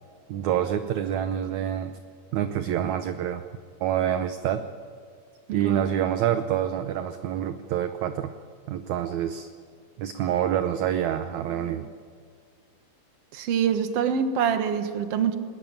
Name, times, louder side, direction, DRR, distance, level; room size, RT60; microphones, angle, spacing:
voice 1, 0.3-2.0 2.3-3.4 3.8-4.6 5.5-8.3 8.7-9.5 10.0-11.9, right 10 dB, 70° right, 8 dB, 2.0 m, -27 dB
voice 2, 5.5-5.8 13.3-15.4, right 7 dB, 55° right, 8 dB, 2.1 m, -25 dB
21.0 x 19.5 x 9.0 m, 2.1 s
omnidirectional pair, 3.8 m